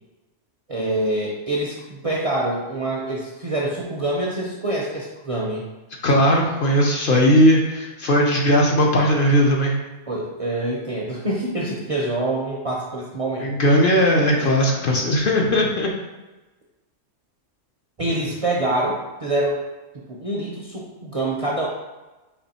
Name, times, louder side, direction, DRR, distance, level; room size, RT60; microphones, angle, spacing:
voice 1, 0.7-5.7 10.1-13.5 14.3-14.5 18.0-19.6 20.1-21.7, right 1 dB, 45° right, -4 dB, 0.5 m, -25 dB
voice 2, 6.0-9.8 13.4-15.9, equal, 55° left, -1 dB, 0.7 m, -18 dB
4.2 x 3.0 x 4.1 m, 1.1 s
omnidirectional pair, 1.3 m